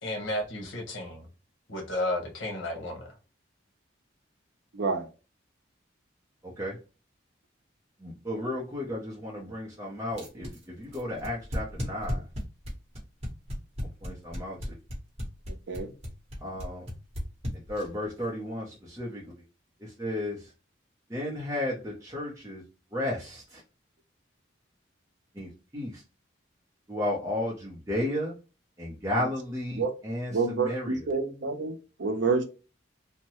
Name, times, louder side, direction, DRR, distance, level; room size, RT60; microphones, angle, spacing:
voice 1, 0.0-1.2 1.7-3.1, left 1 dB, 85° left, 1.0 m, -33 dB
voice 2, 4.7-5.1 15.5-15.9 29.7-29.9 30.3-32.4, right 4 dB, 70° right, 0.6 m, -28 dB
voice 3, 6.4-6.8 8.0-12.2 14.0-14.8 16.4-16.9 17.7-19.3 19.8-20.5 21.1-22.6 22.9-23.6 25.3-26.0 26.9-28.4 28.8-31.0, left 1 dB, 15° right, 0.6 m, -33 dB
sound 1, 10.1-18.0, left 1 dB, 35° right, 1.0 m, -34 dB
2.7 x 2.1 x 2.9 m
head